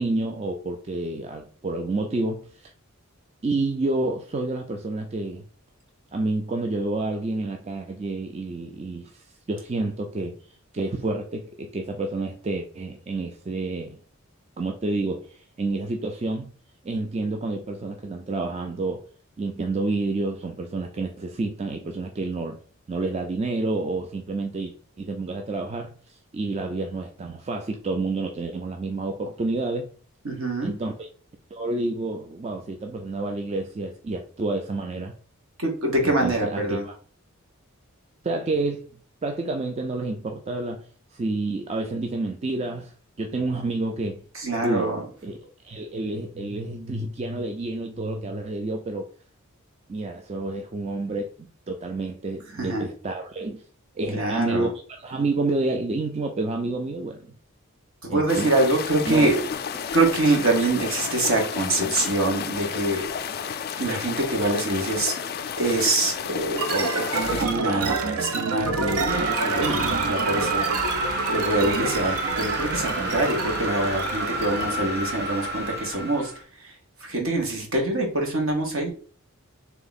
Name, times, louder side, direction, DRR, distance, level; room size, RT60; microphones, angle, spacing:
voice 1, 0.0-2.7 3.4-5.4 6.1-10.4 10.7-14.0 14.6-16.5 16.8-19.0 19.4-22.6 22.9-29.9 30.6-31.1 31.5-35.1 36.0-37.0 38.2-38.9 39.2-40.9 41.1-42.9 43.2-44.2 44.6-49.1 49.9-53.6 54.0-54.7 55.0-57.3 58.1-58.5 59.1-59.3, right 2 dB, 30° right, 0.4 m, -29 dB
voice 2, 30.2-30.8 35.6-36.8 44.3-45.0 52.6-52.9 54.1-54.7 58.0-59.4 59.9-63.1 63.8-65.2 65.6-70.6 71.3-76.3 76.6-76.7 77.0-78.9, right 2 dB, 65° right, 1.3 m, -25 dB
sound 1, 58.3-67.4, left 7 dB, 45° left, 0.3 m, -32 dB
sound 2, 66.6-74.9, right 3 dB, 80° right, 0.5 m, -28 dB
sound 3, 69.1-76.4, right 2 dB, 50° right, 1.1 m, -29 dB
3.5 x 2.9 x 4.0 m
head